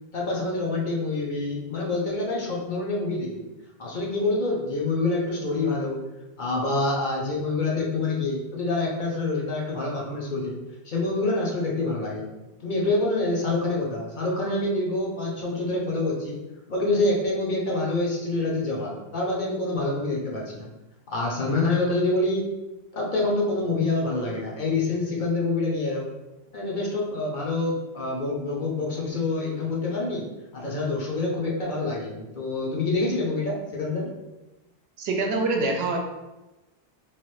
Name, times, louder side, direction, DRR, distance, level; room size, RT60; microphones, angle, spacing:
voice 1, 0.1-3.4 3.8-6.0 6.4-10.6 10.8-12.3 12.6-16.4 16.7-20.7 21.1-22.5 22.9-26.1 26.5-30.3 30.5-34.1, left 2 dB, 55° left, -3 dB, 0.7 m, -26 dB
voice 2, 35.0-36.0, right 3 dB, 75° right, 2 dB, 0.8 m, -25 dB
3.2 x 2.5 x 3.0 m, 1.0 s
omnidirectional pair, 1.1 m